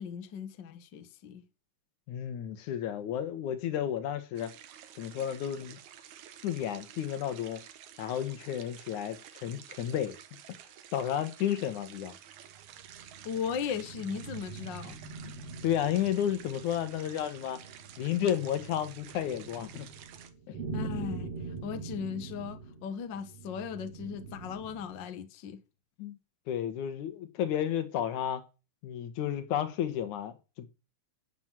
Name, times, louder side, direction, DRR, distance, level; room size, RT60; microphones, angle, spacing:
voice 1, 0.0-1.4 13.2-15.0 20.7-21.3 21.6-25.6, left 7 dB, 55° left, 1.3 m, -37 dB
voice 2, 2.1-4.5 5.0-5.8 6.4-7.6 8.0-10.2 10.9-12.1 15.6-17.6 18.0-19.9 20.5-20.6 26.0-26.2 26.5-28.4 28.8-30.7, left 10 dB, 75° left, 2.6 m, -32 dB
sound 1, 4.4-20.3, right 10 dB, 70° right, 2.3 m, -51 dB
sound 2, 12.5-25.1, right 4 dB, 50° right, 3.5 m, -43 dB
9.1 x 8.0 x 7.4 m
omnidirectional pair, 3.6 m